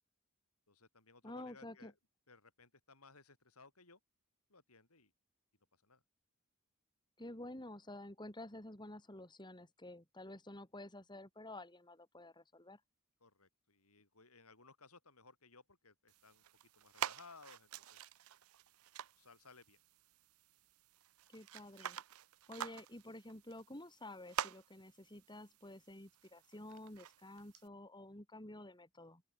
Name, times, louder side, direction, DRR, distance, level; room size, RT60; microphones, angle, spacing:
voice 1, 0.7-1.9 2.3-4.0 4.5-5.1 5.8-6.0 13.2-16.4 16.8-18.0 19.2-19.8, left 4 dB, 85° left, 7.8 m, -61 dB
voice 2, 1.2-1.9 7.2-12.8 21.3-22.0 22.5-29.2, left 1 dB, 20° left, 3.8 m, -51 dB
sound 1, 16.1-27.7, right 9 dB, 75° right, 0.6 m, -48 dB
open air
head